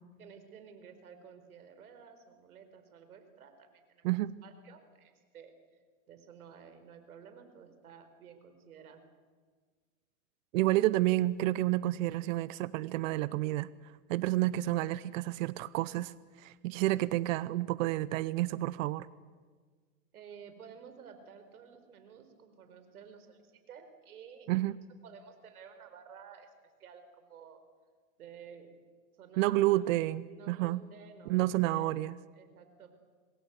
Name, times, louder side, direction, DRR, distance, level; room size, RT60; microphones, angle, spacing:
voice 1, 0.2-4.1 4.4-5.5 6.1-9.0 20.1-24.6 25.0-26.5 26.8-27.6 28.2-28.7 29.2-30.0 30.2-31.9 32.3-32.9, right 7 dB, 85° right, 8 dB, 4.5 m, -53 dB
voice 2, 10.5-13.7 14.1-16.1 16.4-19.1 24.5-24.8 29.4-30.8 31.3-32.2, right 16 dB, 65° right, 18 dB, 0.9 m, -30 dB
27.0 x 21.0 x 8.2 m, 1.5 s
hypercardioid pair, 115°, 43 cm